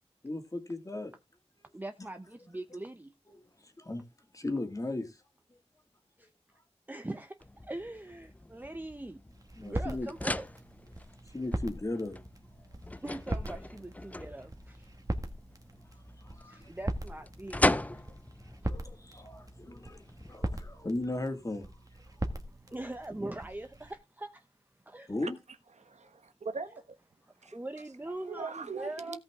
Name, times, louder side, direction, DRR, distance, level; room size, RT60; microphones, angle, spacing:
voice 1, 0.2-1.1 2.0-2.1 3.3-3.4 3.8-4.0 4.3-5.2 9.6-10.1 11.3-12.2 16.2-16.7 18.6-21.7 25.1-25.4, left 2 dB, 30° left, 2.3 m, -36 dB
voice 2, 1.7-3.1 6.2-6.3 6.9-9.2 9.6-10.5 13.0-14.9 16.4-18.0 22.5-24.5 24.9-25.1 27.4-29.2, right 2 dB, 15° right, 0.9 m, -42 dB
sound 1, 7.4-20.3, left 1 dB, 15° left, 0.5 m, -38 dB
sound 2, 9.3-23.9, right 1 dB, 30° right, 1.9 m, -40 dB
voice 3, 25.8-26.8 27.4-27.6 28.2-29.2, right 4 dB, 80° right, 1.4 m, -40 dB
17.0 x 5.7 x 3.7 m
wide cardioid pair, 95°, 12 cm